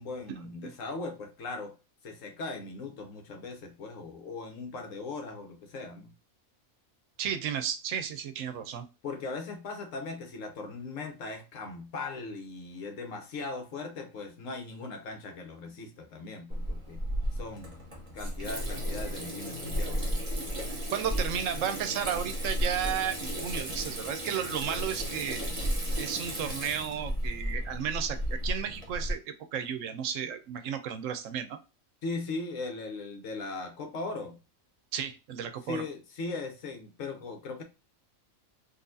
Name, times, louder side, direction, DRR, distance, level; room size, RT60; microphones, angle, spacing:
voice 1, 0.0-1.7 2.0-6.1 9.0-17.0 17.3-17.7 18.1-20.2 32.0-34.3 35.7-37.6, left 3 dB, 70° left, 1.2 m, -39 dB
voice 2, 7.2-8.9 20.9-25.4 26.0-31.6 34.9-35.8, right 8 dB, 75° right, 1.0 m, -33 dB
Water tap faucet / Sink (filling or washing), 16.5-29.1, equal, 25° right, 0.8 m, -34 dB
4.0 x 2.5 x 2.6 m
omnidirectional pair, 1.4 m